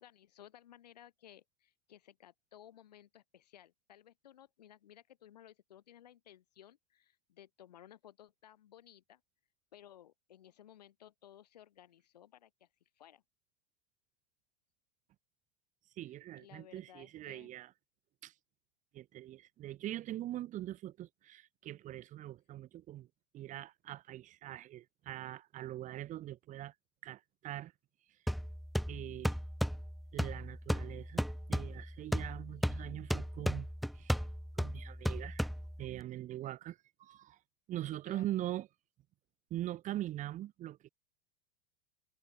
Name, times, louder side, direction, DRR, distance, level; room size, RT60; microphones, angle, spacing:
voice 1, 0.0-9.2 9.7-12.7 13.0-13.2 16.3-17.6 38.1-38.2, left 11 dB, 80° left, 4.7 m, -58 dB
voice 2, 16.0-17.7 18.2-18.3 18.9-23.1 23.3-26.7 27.0-27.7 28.1-28.2 28.9-29.4 30.1-34.3 34.5-35.5 35.8-37.4 37.7-38.7 39.5-40.9, right 13 dB, 40° right, 1.2 m, -42 dB
sound 1, 28.3-36.0, equal, ahead, 0.4 m, -36 dB
hypercardioid pair, 100°, 20 cm